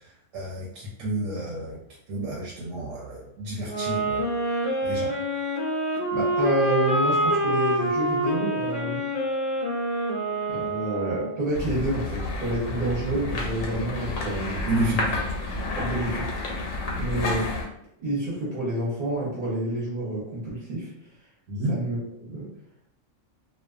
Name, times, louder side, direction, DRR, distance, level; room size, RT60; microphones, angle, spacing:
voice 1, 0.3-1.8 2.1-4.3 4.8-5.1 14.7-15.2 21.5-21.8, right 1 dB, 80° right, -4 dB, 1.0 m, -30 dB
sound 1, 3.6-11.5, equal, 65° left, 0.4 m, -26 dB
voice 2, 6.1-9.1 10.5-14.6 15.7-16.4 16.9-17.5 18.0-20.9 21.7-22.0 22.3-22.5, right 2 dB, 45° right, -6 dB, 0.8 m, -28 dB
sound 2, 11.5-17.7, left 2 dB, 85° left, 1.0 m, -30 dB
2.5 x 2.1 x 2.3 m, 0.74 s
omnidirectional pair, 1.3 m